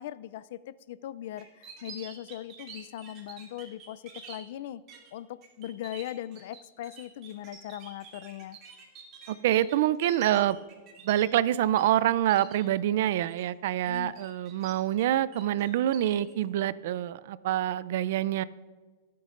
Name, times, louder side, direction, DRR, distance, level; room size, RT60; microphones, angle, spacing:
voice 1, 0.0-4.8 5.1-8.6 13.8-14.2, left 12 dB, 65° left, 18 dB, 0.4 m, -40 dB
sound 1, 1.4-4.4 4.9-5.1 5.4-11.8 12.1-12.6 13.0-13.4 13.8-15.0 15.3-16.3, right 6 dB, 35° right, 2.8 m, -48 dB
voice 2, 9.3-10.6 11.0-18.4, right 12 dB, 65° right, 18 dB, 0.4 m, -26 dB
21.0 x 8.5 x 2.5 m, 1.4 s
supercardioid pair, 145°, 0 cm